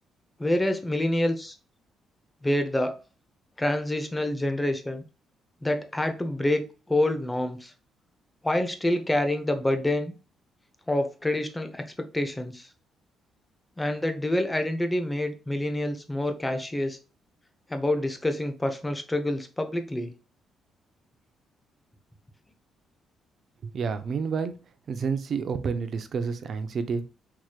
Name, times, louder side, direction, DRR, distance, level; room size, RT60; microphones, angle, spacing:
voice 1, 0.4-1.5 2.4-3.0 3.6-5.0 5.6-7.7 8.4-10.1 10.9-11.8 12.1-12.7 13.8-17.0 17.7-20.1, left 1 dB, 15° left, 7 dB, 0.8 m, -27 dB
voice 2, 23.6-24.5 24.9-27.0, right 5 dB, 55° right, 10 dB, 0.6 m, -29 dB
4.6 x 3.0 x 2.4 m, 0.34 s
cardioid pair, 90°, 0 cm